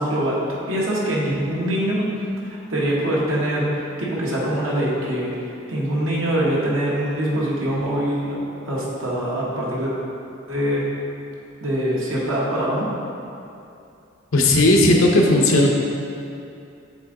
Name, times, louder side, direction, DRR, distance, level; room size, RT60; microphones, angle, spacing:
voice 1, 0.0-2.1 2.5-5.3 5.7-9.9 10.5-10.9 11.6-12.9, right 1 dB, 85° right, -5 dB, 1.4 m, -23 dB
voice 2, 14.3-15.7, left 1 dB, 90° left, 0 dB, 0.8 m, -15 dB
7.1 x 3.9 x 3.8 m, 2.7 s
head